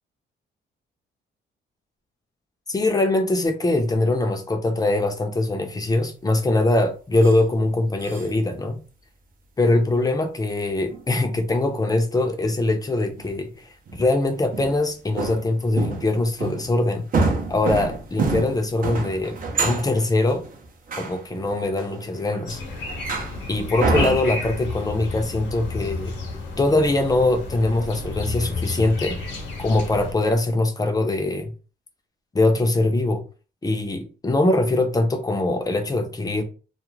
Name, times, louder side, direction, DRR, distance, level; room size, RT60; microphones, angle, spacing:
voice 1, 2.7-8.8 9.6-17.0 17.5-19.4 19.6-20.4 21.0-22.6 23.5-26.1 26.6-29.2 29.6-31.5 32.3-33.2 33.6-36.4, left 2 dB, 20° left, 0.6 m, -22 dB
sound 1, 7.2-7.4 8.0-8.3 10.9-11.0 13.2-13.3 13.9-14.0 14.5-14.9 15.2-16.1 16.4-16.7 17.1-22.4 22.8-23.4 23.8-24.5, right 3 dB, 45° right, 0.7 m, -27 dB
sound 2, 22.5-30.1, left 3 dB, 65° left, 0.8 m, -32 dB
2.4 x 2.0 x 3.0 m
cardioid pair, 90°, 20 cm